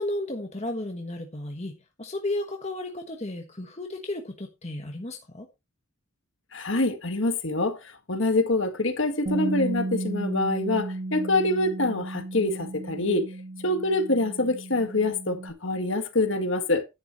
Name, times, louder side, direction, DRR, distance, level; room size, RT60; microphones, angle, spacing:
voice 1, 0.0-5.5, left 1 dB, 30° left, 1.3 m, -33 dB
voice 2, 6.5-13.3 13.6-16.8, left 2 dB, 60° left, 1.8 m, -25 dB
Bass guitar, 9.3-15.5, right 2 dB, 35° right, 1.3 m, -34 dB
10.5 x 10.5 x 3.1 m
head